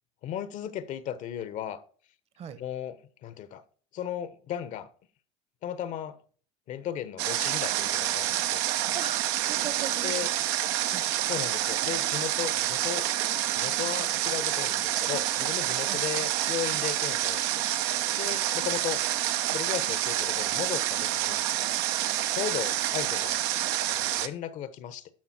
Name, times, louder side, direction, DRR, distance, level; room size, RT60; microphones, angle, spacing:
voice 1, 0.2-1.8 2.6-3.6 3.9-4.9 5.6-6.2 6.7-9.0 10.0-10.3 11.3-13.1 13.5-19.0 19.5-21.4 22.3-23.5 23.8-25.1, left 10 dB, 55° left, 1.2 m, -36 dB
Water, 7.2-24.3, right 13 dB, 70° right, 0.9 m, -28 dB
voice 2, 8.9-10.4 10.9-11.1 15.9-16.0, right 8 dB, 45° right, 1.2 m, -39 dB
12.0 x 5.6 x 4.4 m
hypercardioid pair, 85°, 15 cm